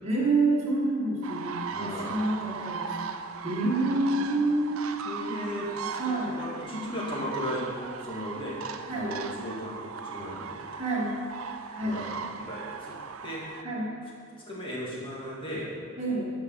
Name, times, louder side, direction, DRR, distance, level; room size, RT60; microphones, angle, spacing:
voice 1, 0.0-2.9 3.4-4.8 6.0-6.3 8.9-9.2 10.7-11.2 11.7-12.1 13.6-13.9 16.0-16.2, right 2 dB, 30° right, -7 dB, 1.9 m, -27 dB
Flying Cranes, 1.2-13.6, right 6 dB, 80° right, 0.5 m, -38 dB
voice 2, 1.7-2.2 5.0-5.7 6.0-7.7 8.0-8.6 8.9-10.8 11.8-13.0 13.2-13.4 14.5-15.7, equal, 25° left, -5 dB, 2.0 m, -36 dB
11.0 x 4.9 x 6.3 m, 2.4 s
head